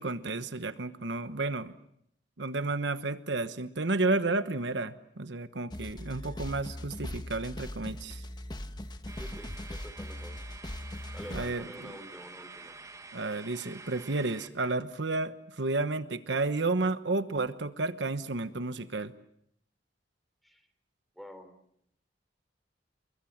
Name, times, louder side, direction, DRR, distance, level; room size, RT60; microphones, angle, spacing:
voice 1, 0.0-1.7 2.4-8.2 11.3-11.9 13.1-19.1, right 3 dB, 75° right, 11 dB, 1.2 m, -31 dB
sound 1, 5.7-11.5, left 1 dB, 25° left, 1.3 m, -40 dB
voice 2, 9.1-10.4 11.1-12.8 20.4-20.6 21.2-21.5, equal, ahead, 9 dB, 3.5 m, -47 dB
sound 2, 9.1-14.5, right 3 dB, 20° right, 1.7 m, -48 dB
29.5 x 23.0 x 7.4 m, 0.71 s
head